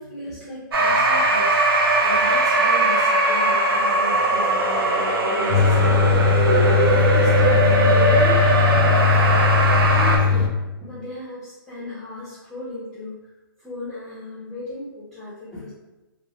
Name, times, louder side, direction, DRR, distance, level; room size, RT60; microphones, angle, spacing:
voice 1, 0.0-1.7 2.0-4.8 5.2-6.0 6.5-9.4 9.9-10.5 10.8-13.2 13.6-15.7, left 2 dB, 5° left, -11 dB, 0.4 m, -34 dB
sound 1, 0.7-10.2, right 2 dB, 80° right, 0.6 m, -19 dB
sound 2, 5.5-10.5, left 5 dB, 70° left, 0.4 m, -19 dB
2.3 x 2.0 x 2.8 m, 1.0 s
hypercardioid pair, 160°, 12 cm